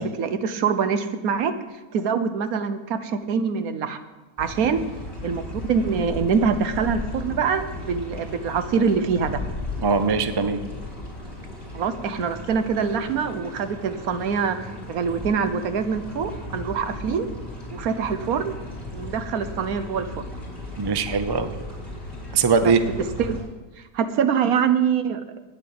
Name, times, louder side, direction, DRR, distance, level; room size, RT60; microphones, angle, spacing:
voice 1, 0.0-1.5 1.9-4.0 4.4-4.8 5.2-9.4 11.7-14.6 14.9-17.3 17.7-18.5 18.9-20.2 22.6-22.7 23.2-23.4 23.9-25.2, right 6 dB, 70° right, 10 dB, 1.3 m, -24 dB
sound 1, 4.4-23.4, left 2 dB, 30° left, 4.6 m, -36 dB
voice 2, 9.8-10.6 20.8-21.5 22.3-22.8, right 5 dB, 40° right, 9 dB, 0.3 m, -21 dB
9.6 x 8.4 x 8.7 m, 1.2 s
omnidirectional pair, 1.6 m